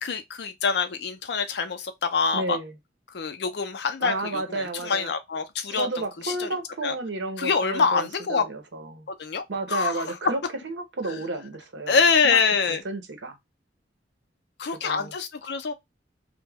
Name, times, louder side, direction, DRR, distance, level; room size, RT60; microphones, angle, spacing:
voice 1, 0.0-2.6 3.1-5.9 6.2-6.5 6.8-6.9 7.4-8.4 9.2-9.4 9.7-10.0 11.9-12.8 14.6-15.7, left 5 dB, 65° left, 0.5 m, -25 dB
voice 2, 2.3-2.8 4.0-5.1 5.7-9.1 9.5-12.0 12.2-13.4 14.7-15.2, right 2 dB, 80° right, 0.7 m, -32 dB
2.2 x 2.1 x 3.3 m
head